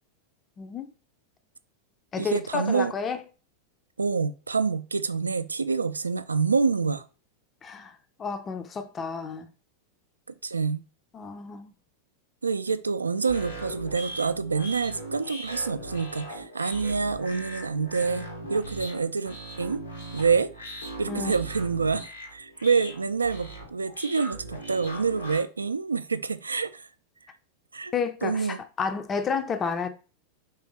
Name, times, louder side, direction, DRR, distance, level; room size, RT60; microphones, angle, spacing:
voice 1, 0.6-0.9 2.1-3.2 7.6-7.9 8.2-9.5 11.1-11.7 21.1-21.3 27.9-28.5 28.8-29.9, left 5 dB, 25° left, 0.5 m, -30 dB
voice 2, 2.2-2.9 4.0-7.0 10.4-10.8 12.4-19.8 20.1-20.5 21.0-26.9 27.7-27.9 28.2-28.6, right 5 dB, 75° right, 0.3 m, -27 dB
sound 1, 13.2-25.4, right 1 dB, 85° left, 1.3 m, -39 dB
4.8 x 3.4 x 3.0 m
figure-of-eight pair, 90°, 0 cm